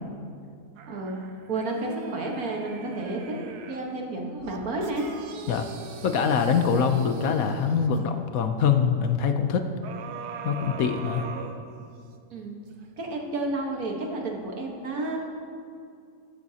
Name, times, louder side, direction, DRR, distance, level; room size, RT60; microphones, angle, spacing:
sound 1, 0.8-3.9 4.4-8.1 9.8-12.2 12.7-12.8, right 6 dB, 85° right, 1.3 m, -42 dB
voice 1, 0.9-1.2 1.5-3.4 3.7-5.1 12.3-12.6 13.0-15.2, right 2 dB, 65° right, 0 dB, 1.8 m, -31 dB
voice 2, 6.0-9.7 10.4-11.3, left 6 dB, 70° left, 6 dB, 1.1 m, -24 dB
14.0 x 13.5 x 2.8 m, 2.4 s
omnidirectional pair, 1.7 m